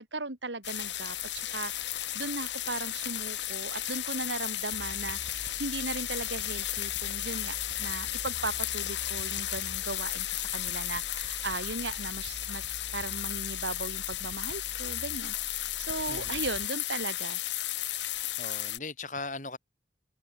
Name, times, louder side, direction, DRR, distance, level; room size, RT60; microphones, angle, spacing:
voice 1, 0.0-17.4, right 3 dB, 85° right, 3.9 m, -37 dB
sound 1, 0.6-18.8, left 14 dB, 85° left, 2.6 m, -34 dB
sound 2, 4.7-16.7, equal, 70° right, 6.2 m, -47 dB
voice 2, 16.1-16.4 18.4-19.6, left 3 dB, 45° left, 6.4 m, -38 dB
head